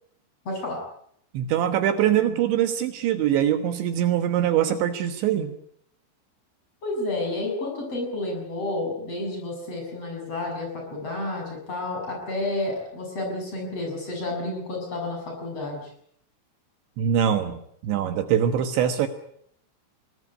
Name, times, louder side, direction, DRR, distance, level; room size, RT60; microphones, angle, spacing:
voice 1, 0.5-0.8 6.8-15.8, left 2 dB, 30° left, 1 dB, 7.6 m, -30 dB
voice 2, 1.3-5.6 17.0-19.1, right 10 dB, 70° right, 8 dB, 3.5 m, -23 dB
23.0 x 19.0 x 9.7 m, 0.68 s
omnidirectional pair, 5.7 m